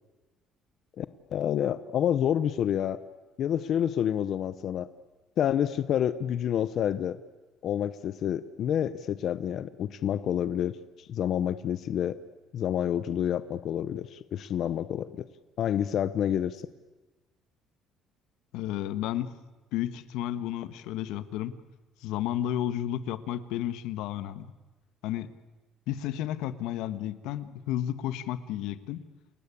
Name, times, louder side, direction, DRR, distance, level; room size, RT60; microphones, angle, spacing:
voice 1, 1.3-3.0 3.4-4.9 5.4-7.2 7.6-12.2 12.5-15.2 15.6-16.6, left 10 dB, 45° left, 14 dB, 0.8 m, -28 dB
voice 2, 18.5-19.3 19.7-21.6 22.0-24.5 25.0-25.3 25.9-29.0, left 12 dB, 85° left, 13 dB, 1.5 m, -32 dB
29.0 x 21.0 x 8.6 m, 1.2 s
cardioid pair, 170°, 0 cm